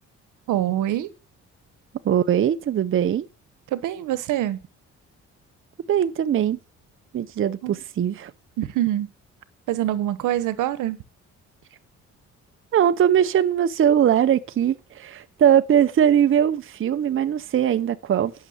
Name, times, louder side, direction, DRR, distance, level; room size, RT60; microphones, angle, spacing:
voice 1, 0.5-1.1 3.7-4.6 7.6-7.7 8.6-9.1 9.7-11.0, right 13 dB, 85° right, 1.1 m, -24 dB
voice 2, 2.0-3.3 5.9-6.6 7.1-8.3 12.7-18.3, right 9 dB, 45° right, 0.7 m, -20 dB
11.5 x 6.6 x 6.4 m
cardioid pair, 90°, 30 cm